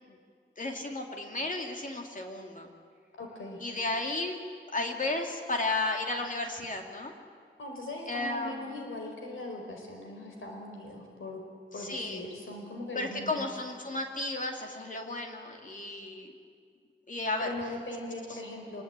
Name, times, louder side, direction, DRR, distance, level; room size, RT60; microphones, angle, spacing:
voice 1, 0.6-2.7 3.6-4.4 4.7-7.1 8.1-8.7 11.8-12.2 12.9-16.3 17.1-17.5, left 2 dB, 40° left, 3 dB, 2.6 m, -33 dB
voice 2, 3.1-3.6 7.6-11.4 11.7-13.5 17.4-18.8, left 1 dB, 80° left, 2 dB, 4.7 m, -40 dB
25.5 x 21.5 x 8.9 m, 2.1 s
wide cardioid pair, 155°, 20 cm